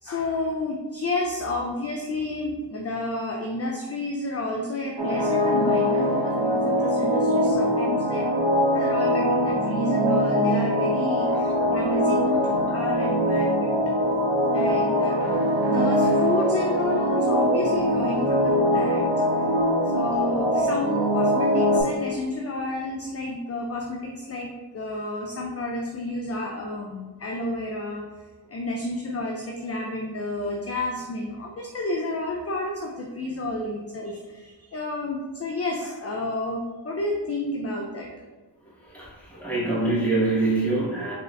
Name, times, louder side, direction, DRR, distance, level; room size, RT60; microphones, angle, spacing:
voice 1, 0.0-8.3 8.7-13.8 14.5-19.5 19.9-38.1, left 2 dB, 35° left, 0 dB, 0.4 m, -30 dB
sound 1, 5.0-21.8, equal, 75° right, 1.0 m, -22 dB
voice 2, 38.9-41.1, right 2 dB, 5° left, -8 dB, 1.4 m, -25 dB
4.1 x 3.7 x 2.5 m, 1.3 s
wide cardioid pair, 95°, 46 cm